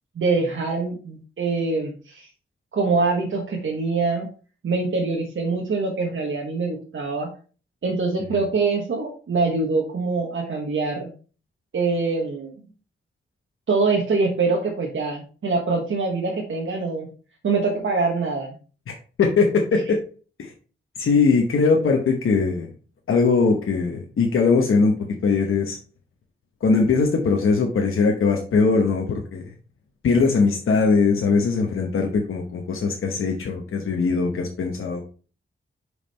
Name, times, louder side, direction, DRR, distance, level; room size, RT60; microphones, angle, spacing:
voice 1, 0.1-2.3 2.7-4.3 4.6-7.3 7.8-11.1 11.7-12.5 13.7-17.1 17.4-18.5, right 3 dB, 70° right, -1 dB, 1.3 m, -24 dB
voice 2, 18.9-20.0 20.4-20.5 21.0-22.7 23.1-24.9 25.2-25.8 26.6-29.4 30.0-35.0, left 4 dB, 90° left, 1 dB, 1.0 m, -20 dB
5.3 x 4.8 x 4.3 m, 0.38 s
wide cardioid pair, 90°, 21 cm